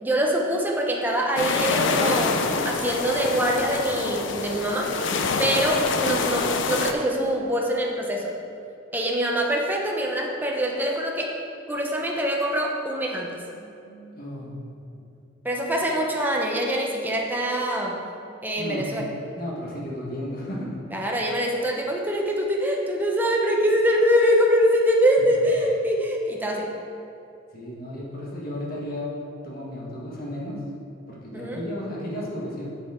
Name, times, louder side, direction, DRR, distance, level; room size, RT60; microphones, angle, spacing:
voice 1, 0.0-4.9 5.4-8.3 8.9-11.3 11.7-13.3 15.4-18.0 18.4-19.0 20.9-26.7 31.3-31.6, equal, 10° right, -1 dB, 0.9 m, -24 dB
sound 1, 1.4-6.9, left 4 dB, 70° left, 0.6 m, -26 dB
voice 2, 13.4-14.6 15.8-16.0 18.6-18.9 19.4-20.8 27.5-29.2 29.4-30.6 31.1-32.8, left 1 dB, 50° left, -4 dB, 1.6 m, -34 dB
7.6 x 7.5 x 3.7 m, 2.6 s
head